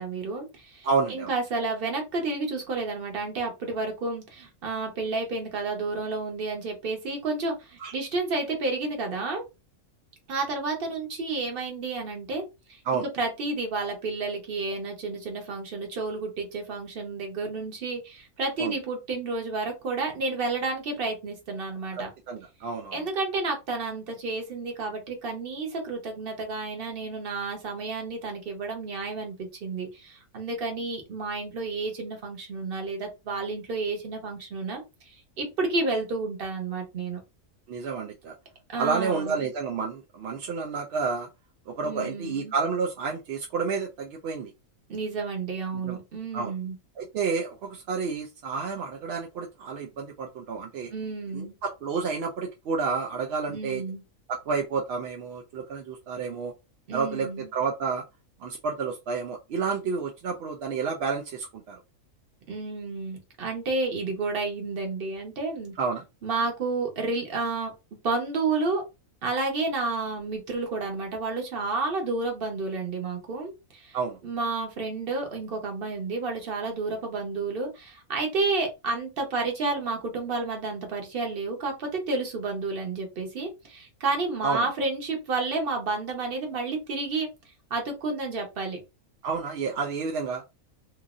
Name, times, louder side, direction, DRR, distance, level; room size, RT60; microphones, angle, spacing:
voice 1, 0.0-9.4 10.3-12.4 12.7-22.1 22.9-37.2 38.7-39.5 41.8-42.5 44.9-46.7 50.9-51.5 53.5-54.0 56.9-57.5 62.5-65.7 66.2-67.7 68.0-68.8 69.2-74.0 74.2-88.8, right 3 dB, 45° right, 1.0 m, -31 dB
voice 2, 0.8-1.3 7.8-7.9 12.9-13.1 18.6-18.7 22.0-23.0 37.7-38.3 38.8-41.3 41.7-44.5 45.7-46.0 46.3-46.5 47.0-50.9 51.3-53.8 54.3-56.5 56.9-58.0 58.4-61.8 65.8-66.0 73.9-74.2 84.4-84.7 89.2-90.4, right 5 dB, 65° right, 0.6 m, -30 dB
2.9 x 2.5 x 2.4 m
omnidirectional pair, 1.4 m